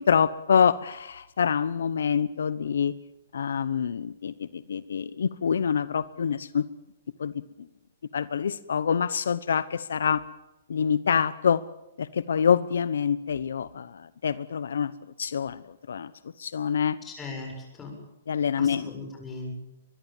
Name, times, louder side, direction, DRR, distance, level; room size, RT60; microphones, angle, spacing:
voice 1, 0.0-2.9 3.3-6.6 7.2-7.4 8.1-10.2 10.7-11.6 12.0-14.9 15.2-16.1 16.4-17.0 18.3-18.9, left 7 dB, 80° left, 16 dB, 0.9 m, -26 dB
voice 2, 17.0-17.9 18.6-19.5, left 3 dB, 15° left, 2 dB, 7.2 m, -38 dB
23.0 x 22.0 x 7.3 m, 0.93 s
hypercardioid pair, 155°, 0 cm